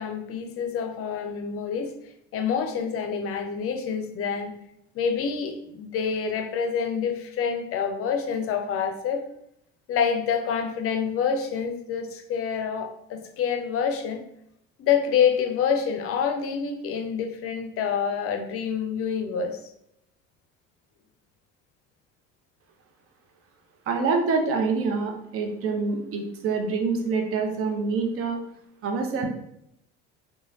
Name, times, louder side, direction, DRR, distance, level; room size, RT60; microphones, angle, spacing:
voice 1, 0.0-1.9 2.3-4.5 4.9-9.2 9.9-14.2 14.8-19.6, left 7 dB, 45° left, 6 dB, 0.5 m, -27 dB
voice 2, 23.9-28.4 28.8-29.3, right 4 dB, 45° right, 3 dB, 0.7 m, -26 dB
3.0 x 2.2 x 2.6 m, 0.75 s
supercardioid pair, 90°, 31 cm